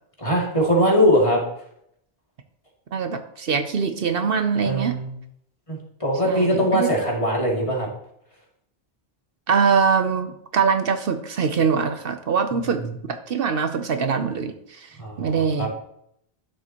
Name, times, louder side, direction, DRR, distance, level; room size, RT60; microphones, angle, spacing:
voice 1, 0.2-1.4 4.6-5.1 5.7-7.9 15.0-15.7, equal, 30° left, -3 dB, 2.5 m, -21 dB
voice 2, 2.9-5.0 6.2-6.9 9.5-15.7, right 6 dB, 65° right, 7 dB, 0.9 m, -23 dB
12.5 x 7.4 x 2.9 m, 0.73 s
omnidirectional pair, 1.0 m